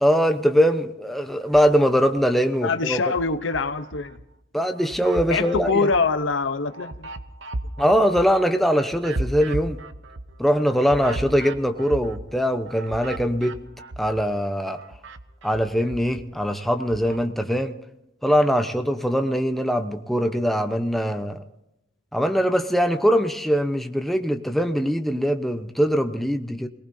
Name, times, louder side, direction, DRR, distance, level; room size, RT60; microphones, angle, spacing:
voice 1, 0.0-3.0 4.5-5.9 7.8-9.8 10.4-13.6 14.0-14.8 15.4-17.8 18.2-21.4 22.1-26.7, equal, ahead, 6 dB, 0.9 m, -22 dB
sound 1, 1.4-2.2 2.7-4.3 4.7-14.4 14.7-17.2, right 2 dB, 75° right, 0.9 m, -36 dB
voice 2, 2.6-4.2 5.3-7.1, left 4 dB, 80° left, 10 dB, 0.9 m, -24 dB
27.5 x 18.5 x 2.8 m, 0.86 s
head